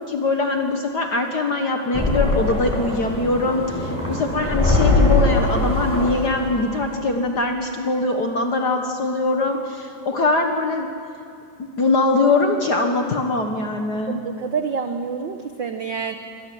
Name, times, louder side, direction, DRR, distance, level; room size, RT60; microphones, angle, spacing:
voice 1, 0.0-10.9 11.6-14.2, left 3 dB, 50° left, 4 dB, 1.4 m, -22 dB
sound 1, 1.9-6.9, left 2 dB, 5° left, 6.6 m, -21 dB
voice 2, 14.1-16.2, right 6 dB, 75° right, 7 dB, 1.1 m, -27 dB
25.0 x 18.0 x 7.7 m, 2.5 s
omnidirectional pair, 3.3 m